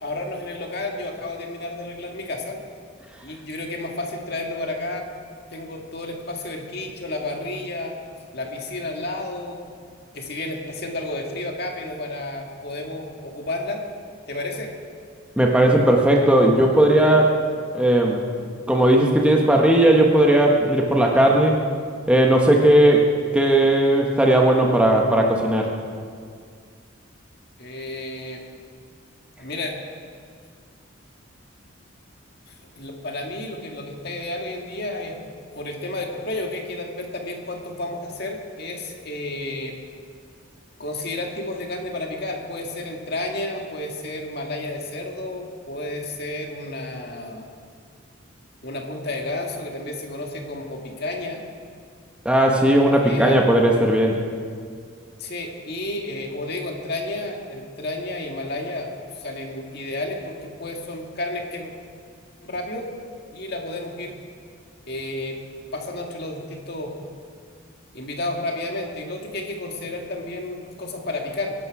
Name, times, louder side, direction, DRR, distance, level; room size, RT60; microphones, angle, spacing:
voice 1, 0.0-2.6 3.2-5.1 5.5-8.0 8.3-9.6 10.1-13.8 14.3-14.7 27.6-28.4 29.4-29.7 32.5-35.2 35.5-39.7 40.8-47.4 48.6-51.4 53.0-53.4 55.2-61.7 62.4-62.9 63.3-64.2 64.9-65.4 65.7-66.9 67.9-71.5, left 2 dB, 50° left, 1 dB, 2.0 m, -31 dB
voice 2, 15.4-17.4 17.7-18.2 18.7-21.6 22.1-23.1 23.3-25.7 52.2-54.2, right 1 dB, 5° right, 0 dB, 1.2 m, -17 dB
24.0 x 11.5 x 4.9 m, 2.1 s
head